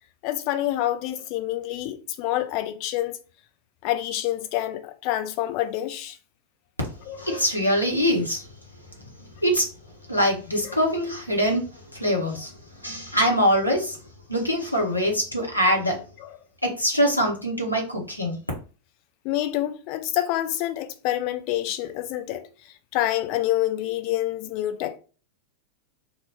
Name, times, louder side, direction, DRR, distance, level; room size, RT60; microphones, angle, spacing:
voice 1, 0.2-3.2 3.8-6.2 7.1-7.4 10.6-10.8 16.2-16.3 19.2-25.0, left 14 dB, 45° left, 0.3 m, -27 dB
voice 2, 7.2-8.4 9.4-9.6 10.1-11.6 11.9-12.5 12.8-14.0 14.3-16.0 16.6-18.4, equal, 85° left, 0.8 m, -23 dB
2.7 x 2.2 x 2.9 m
figure-of-eight pair, 90°, 0 cm